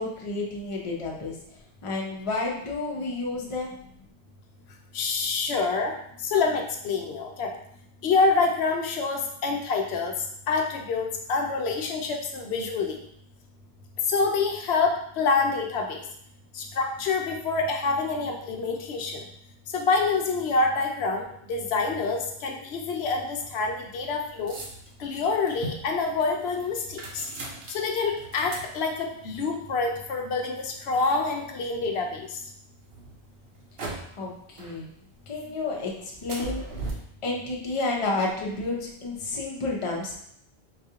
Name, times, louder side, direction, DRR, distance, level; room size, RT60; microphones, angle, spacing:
voice 1, 0.0-1.4 1.8-3.8 34.2-34.9 35.3-36.9 37.2-40.1, left 3 dB, 35° left, -1 dB, 0.6 m, -31 dB
voice 2, 4.9-6.0 6.2-7.5 8.0-10.1 10.5-13.0 14.1-16.0 16.5-19.2 19.7-21.2 21.5-24.6 25.0-27.2 27.7-32.3, left 4 dB, 75° left, 2 dB, 0.8 m, -26 dB
sound 1, 22.9-32.1 32.7-34.3 34.6-35.4 35.7-36.9, right 2 dB, 65° right, 0.9 m, -41 dB
4.0 x 2.4 x 2.8 m, 0.70 s
omnidirectional pair, 1.1 m